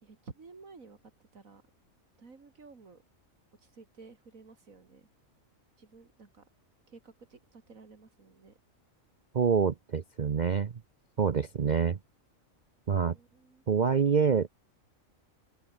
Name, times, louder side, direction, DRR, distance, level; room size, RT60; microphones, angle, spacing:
voice 1, 0.0-1.0 1.3-1.6 2.2-3.0 3.6-5.1 5.8-6.4 6.9-8.5 13.1-13.6, right 4 dB, 85° right, 3.1 m, -53 dB
voice 2, 9.3-10.7 11.2-12.0 12.9-13.2 13.7-14.5, right 6 dB, 40° right, 0.8 m, -26 dB
open air
omnidirectional pair, 1.4 m